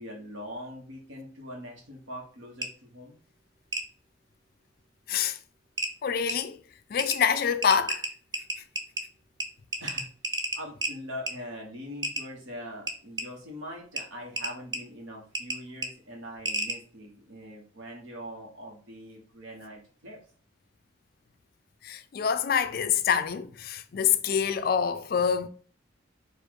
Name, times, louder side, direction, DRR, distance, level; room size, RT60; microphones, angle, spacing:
voice 1, 0.0-3.2 9.8-10.1 10.5-20.2, equal, 75° right, 1.2 m, -42 dB
sound 1, 2.6-2.7 3.7-3.8 5.2-5.3 5.8-5.9 6.3-6.4 7.0-7.2 7.6-9.0 9.4-9.5 9.7-10.9 11.3-11.4 12.0-12.2 12.9-13.3 14.0-14.1 14.4-14.8 15.3-15.6 15.8-15.9 16.5-16.8, right 1 dB, 20° right, 0.5 m, -30 dB
voice 2, 5.1-5.4 6.0-6.6 6.9-8.1 21.8-25.5, left 7 dB, 50° left, 0.3 m, -26 dB
4.3 x 2.4 x 4.6 m
head